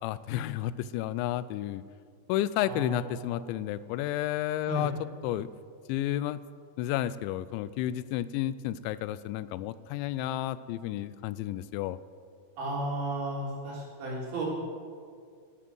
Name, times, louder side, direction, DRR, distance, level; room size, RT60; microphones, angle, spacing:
voice 1, 0.0-1.8 2.3-4.9 5.2-5.5 5.9-6.4 6.8-12.0, left 13 dB, 90° left, 16 dB, 2.9 m, -31 dB
voice 2, 2.6-3.1 4.7-4.8 12.6-14.4, right 1 dB, 60° right, -4 dB, 4.9 m, -34 dB
13.5 x 12.0 x 6.2 m, 2.1 s
omnidirectional pair, 5.2 m